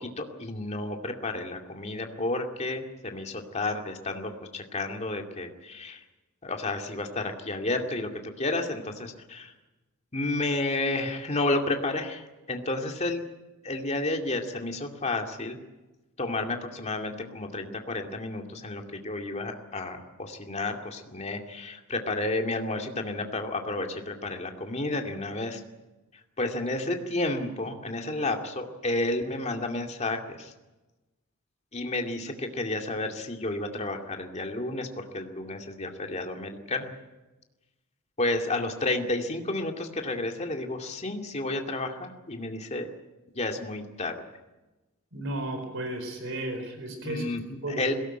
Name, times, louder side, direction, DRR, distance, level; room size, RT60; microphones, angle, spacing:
voice 1, 0.0-6.0 6.4-9.5 10.1-13.3 13.6-15.6 16.2-25.6 26.4-30.5 31.7-36.9 38.2-42.9 43.3-44.2 47.0-47.9, left 2 dB, 30° left, 3 dB, 2.4 m, -31 dB
voice 2, 45.1-47.2 47.6-47.8, right 1 dB, 60° right, 6 dB, 4.5 m, -33 dB
22.0 x 18.0 x 9.1 m, 1.1 s
head